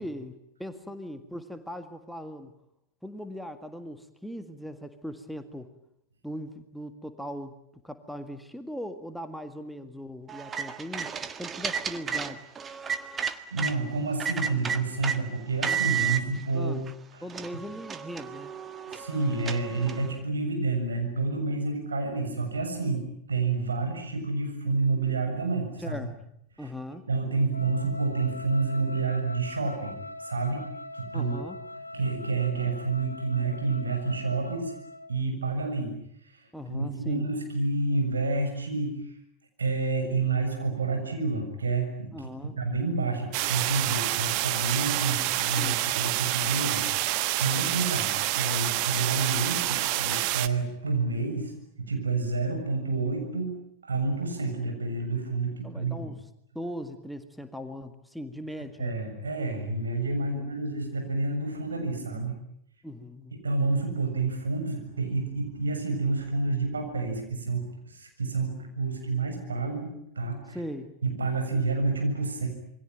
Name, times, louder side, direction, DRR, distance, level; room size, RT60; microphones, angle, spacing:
voice 1, 0.0-2.5 3.0-5.7 6.2-11.1 11.4-12.5 16.5-16.8 17.2-18.5 25.8-26.1 26.6-27.1 31.1-31.6 36.5-37.3 42.1-42.6 45.6-45.8 55.6-56.2 56.6-59.0 60.3-60.6 62.8-63.3 70.5-71.0, equal, ahead, 8 dB, 1.9 m, -39 dB
sound 1, 10.3-13.7 14.2-15.2 15.6-16.2 16.9-17.0 17.3-20.1, right 7 dB, 20° right, 1.6 m, -32 dB
voice 2, 13.5-16.8 17.1-17.2 18.9-26.0 26.6-29.9 30.2-30.7 30.9-31.4 31.9-34.7 35.1-35.9 36.3-39.0 39.6-42.3 42.6-51.5 51.8-53.5 53.8-56.1 58.8-62.4 63.4-70.6 71.0-72.5, right 3 dB, 75° right, 4 dB, 7.2 m, -29 dB
Wind instrument woodwind instrument, 27.5-35.2, left 1 dB, 85° left, 2.5 m, -42 dB
sound 2, 43.3-50.5, right 16 dB, 45° right, 1.4 m, -28 dB
28.0 x 23.0 x 9.1 m, 0.73 s
figure-of-eight pair, 90°, 0 cm